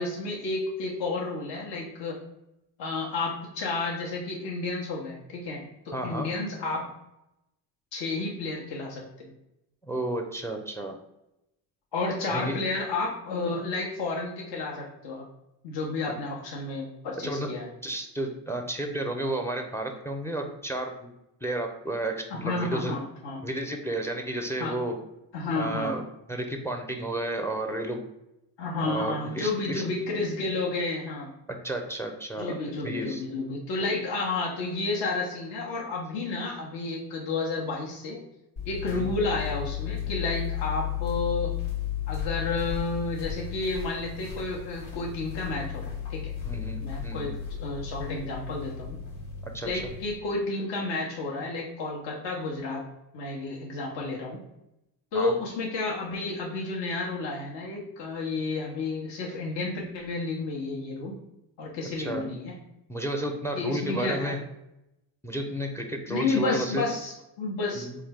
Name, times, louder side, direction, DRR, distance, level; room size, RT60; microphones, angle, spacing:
voice 1, 0.0-2.2 2.8-6.9 7.9-9.3 11.9-15.2 15.6-17.7 22.3-23.4 24.6-24.7 25.3-25.9 28.6-31.3 32.4-38.2 38.7-41.5 42.1-46.3 46.8-49.0 49.6-52.9 53.1-54.4 55.1-61.2 61.6-62.6 63.5-64.3 66.1-67.9, left 3 dB, 60° left, -2 dB, 0.9 m, -31 dB
voice 2, 5.9-6.3 9.8-11.0 12.3-12.6 17.2-17.5 17.8-21.1 21.4-23.0 23.4-25.0 25.6-28.0 28.8-29.8 31.5-32.5 32.8-33.2 38.9-39.1 46.5-47.3 49.4-49.7 55.1-55.3 62.0-62.2 62.9-64.4 65.2-66.8 67.8-68.0, right 1 dB, 5° left, 4 dB, 0.4 m, -32 dB
sound 1, 38.6-50.1, left 9 dB, 75° left, 1.2 m, -34 dB
3.6 x 2.3 x 3.3 m, 0.87 s
supercardioid pair, 60°, 49 cm